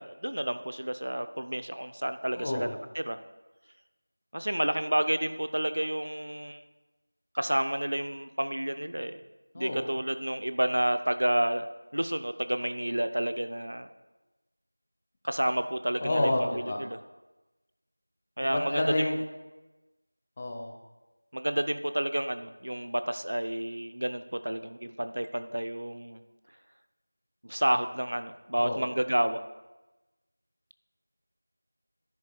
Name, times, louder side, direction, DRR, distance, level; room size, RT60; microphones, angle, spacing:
voice 1, 0.0-3.2 4.3-6.6 7.3-9.2 9.5-11.7 11.9-13.9 15.2-16.3 16.6-17.0 18.4-19.1 21.3-26.2 27.4-29.4, right 1 dB, 55° right, 10 dB, 0.5 m, -30 dB
voice 2, 2.3-2.7 9.5-9.9 16.0-16.8 18.4-19.2 20.4-20.7 28.6-28.9, left 1 dB, 10° left, 1 dB, 0.4 m, -29 dB
10.5 x 10.5 x 2.3 m, 1.1 s
figure-of-eight pair, 180°, 0 cm